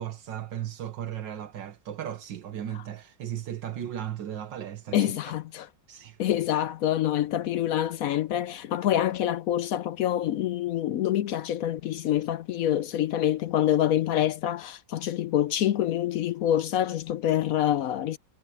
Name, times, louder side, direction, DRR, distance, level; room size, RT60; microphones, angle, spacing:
voice 1, 0.0-5.4 5.9-6.2, right 10 dB, 80° right, 1.8 m, -36 dB
voice 2, 4.9-5.7 6.2-18.2, left 11 dB, 70° left, 0.8 m, -26 dB
omnidirectional pair, 2.0 m